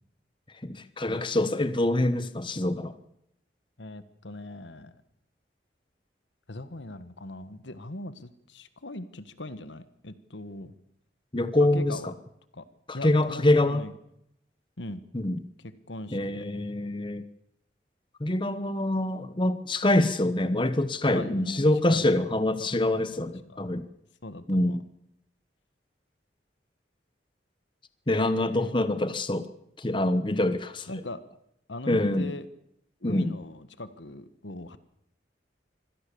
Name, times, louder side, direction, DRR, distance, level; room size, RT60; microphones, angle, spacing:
voice 1, 0.6-3.0 11.3-12.1 12.9-13.8 15.1-15.4 16.1-17.2 18.2-23.8 24.5-24.8 28.1-29.5 29.8-30.9 31.9-32.3 33.0-33.3, left 1 dB, 25° left, 12 dB, 1.1 m, -25 dB
voice 2, 3.8-5.0 6.5-10.7 11.6-12.1 12.5-12.6 12.9-13.9 14.8-15.0 15.9-16.5 21.1-22.1 22.6-22.8 23.5-23.6 24.2-24.8 28.1-28.7 30.9-31.2 31.7-32.5 33.0-34.8, left 1 dB, 80° left, 13 dB, 1.6 m, -39 dB
25.0 x 17.0 x 7.0 m, 0.77 s
head